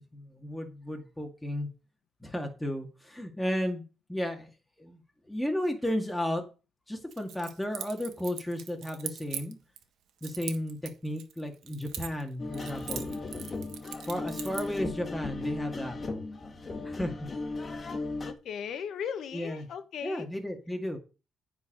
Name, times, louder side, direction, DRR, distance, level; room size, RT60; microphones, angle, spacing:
voice 1, 0.1-1.7 2.2-3.8 4.1-4.5 4.8-5.0 5.3-6.4 6.9-9.6 10.2-13.1 14.1-16.0 16.8-17.1 19.3-19.7 20.0-21.0, left 1 dB, 5° left, 2 dB, 2.2 m, -33 dB
Keys jangling, 7.1-9.8 10.2-12.3 12.5-14.8, right 9 dB, 75° right, 1.5 m, -41 dB
sound 1, 12.4-18.3, left 3 dB, 35° left, 1.8 m, -36 dB
voice 2, 18.2-20.3, left 7 dB, 70° left, 10 dB, 1.5 m, -37 dB
9.7 x 4.8 x 7.7 m, 0.32 s
cardioid pair, 90°, 0 cm